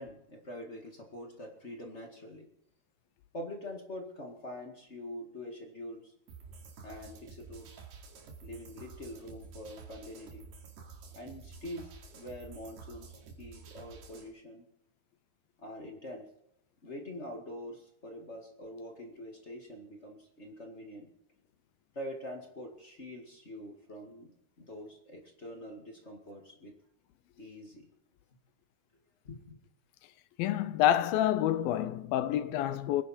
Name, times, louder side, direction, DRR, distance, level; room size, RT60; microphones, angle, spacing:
voice 1, 0.0-2.5 3.3-6.1 6.8-7.8 8.4-10.5 11.1-14.6 15.6-16.2 16.8-21.1 21.9-24.3 24.6-26.7 27.4-27.9 29.2-29.6, left 1 dB, 40° left, 0.9 m, -45 dB
sound 1, 6.3-14.3, right 4 dB, 75° right, 4.2 m, -50 dB
voice 2, 30.4-33.0, left 11 dB, 75° left, 2.3 m, -28 dB
24.0 x 10.5 x 4.4 m
omnidirectional pair, 4.7 m